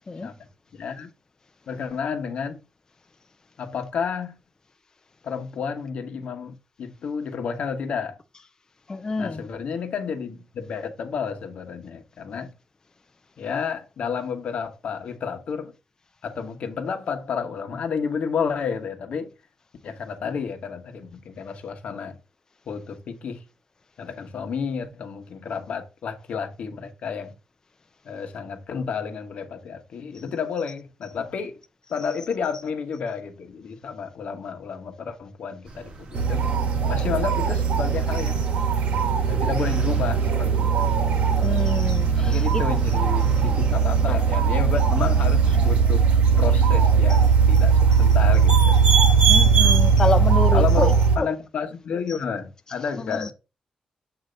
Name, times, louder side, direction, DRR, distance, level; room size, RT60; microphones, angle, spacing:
voice 1, 0.8-1.1 1.7-2.6 3.6-4.4 5.2-8.2 9.2-12.5 13.4-15.7 16.2-19.3 19.8-22.2 22.7-23.4 24.0-27.3 28.0-31.6 31.9-36.5 36.9-38.5 39.3-40.9 42.2-48.8 50.5-53.3, left 6 dB, 70° left, 1.1 m, -31 dB
voice 2, 8.9-9.4 30.1-30.2 41.4-42.6 43.2-43.4 47.1-47.2 47.5-47.6 47.9-48.0 49.2-51.3 53.0-53.3, left 3 dB, 30° left, 0.5 m, -28 dB
sound 1, 35.6-45.8, right 2 dB, 50° right, 1.4 m, -39 dB
sound 2, 36.1-51.2, right 6 dB, 80° right, 1.4 m, -19 dB
7.9 x 2.8 x 5.1 m
cardioid pair, 105°, 2 cm